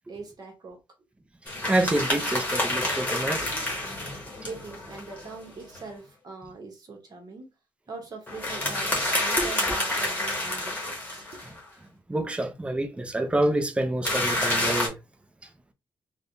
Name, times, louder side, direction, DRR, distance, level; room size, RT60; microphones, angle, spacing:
voice 1, 0.1-0.8 3.8-7.5 7.9-8.9 9.2-11.3, right 3 dB, 45° right, 1.0 m, -42 dB
sound 1, 1.5-5.8 8.3-11.6 14.0-14.9, left 1 dB, 15° left, 1.1 m, -28 dB
voice 2, 1.7-3.5 9.4-9.5 12.1-15.0, right 1 dB, 15° right, 0.5 m, -27 dB
3.3 x 2.2 x 2.6 m
wide cardioid pair, 130°, 9 cm